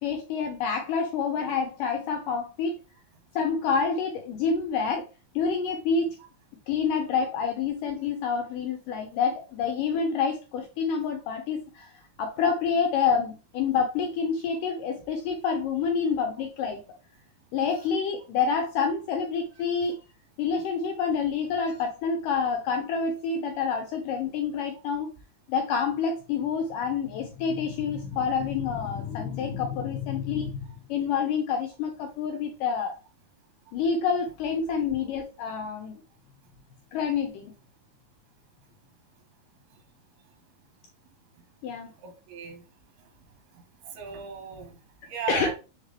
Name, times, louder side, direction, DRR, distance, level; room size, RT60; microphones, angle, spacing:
voice 1, 0.0-2.8 3.4-5.1 5.4-6.2 6.7-11.9 12.2-16.8 17.5-20.0 20.4-25.1 25.5-33.0 33.7-36.0 36.9-37.5 41.6-41.9 45.3-45.5, left 6 dB, 80° left, 2.0 m, -28 dB
voice 2, 42.0-42.6 43.5-44.8 45.0-45.5, right 7 dB, 80° right, 3.4 m, -36 dB
7.8 x 3.6 x 3.3 m
omnidirectional pair, 4.6 m